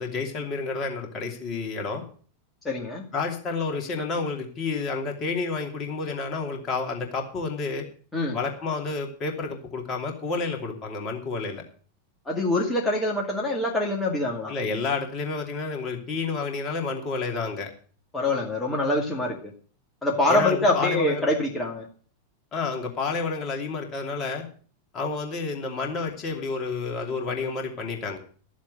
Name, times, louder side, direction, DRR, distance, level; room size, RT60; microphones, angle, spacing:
voice 1, 0.0-2.0 3.1-7.9 8.3-11.6 14.5-17.7 20.3-21.2 22.5-24.4 24.9-28.2, left 4 dB, 30° left, 2 dB, 2.8 m, -30 dB
voice 2, 2.6-3.0 8.1-8.4 12.3-14.5 18.1-19.4 20.0-21.9, left 1 dB, 10° left, -2 dB, 2.4 m, -25 dB
13.0 x 7.4 x 6.7 m, 0.43 s
figure-of-eight pair, 90°, 0 cm